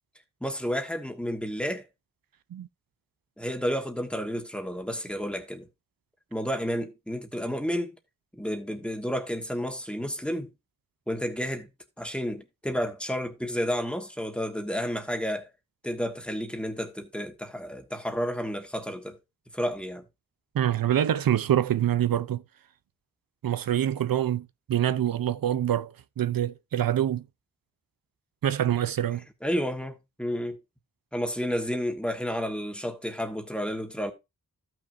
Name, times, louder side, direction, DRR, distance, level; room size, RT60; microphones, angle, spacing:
voice 1, 0.4-1.9 3.4-5.7 6.3-7.9 8.3-10.5 11.1-11.7 12.0-15.5 15.8-19.2 19.5-20.0 29.4-30.6 31.1-34.1, equal, 5° left, 1.5 m, -31 dB
voice 2, 20.5-22.4 23.4-27.2 28.4-29.2, right 11 dB, 85° right, 0.6 m, -25 dB
15.0 x 6.0 x 2.6 m
wide cardioid pair, 145°, 34 cm